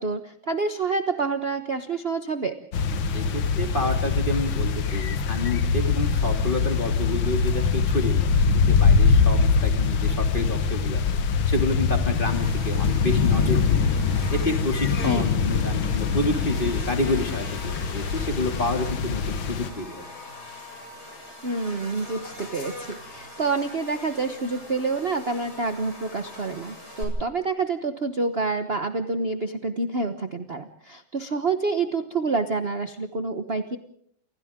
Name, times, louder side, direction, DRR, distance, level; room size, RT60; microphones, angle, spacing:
voice 1, 0.0-2.6 15.1-15.2 21.4-33.8, right 4 dB, 35° right, 8 dB, 1.2 m, -28 dB
sound 1, 2.7-19.7, left 5 dB, 80° left, 2.1 m, -23 dB
voice 2, 3.1-8.2 8.5-11.0 11.5-13.6 14.3-20.0, left 1 dB, 25° left, 4 dB, 2.9 m, -29 dB
Buzz, 12.2-27.0, left 1 dB, 50° left, 7.9 m, -42 dB
29.5 x 27.0 x 3.7 m, 0.64 s
omnidirectional pair, 2.2 m